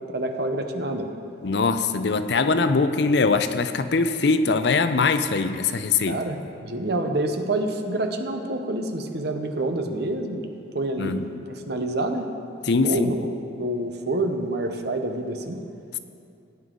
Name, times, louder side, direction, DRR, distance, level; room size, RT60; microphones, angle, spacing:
voice 1, 0.1-1.1 6.1-10.5 10.7-12.3 12.8-13.3 13.6-15.6, right 1 dB, 55° right, 5 dB, 0.9 m, -27 dB
voice 2, 1.4-6.2 11.0-11.3 12.7-13.2, left 4 dB, 60° left, 10 dB, 0.5 m, -22 dB
17.0 x 9.6 x 3.8 m, 2.5 s
head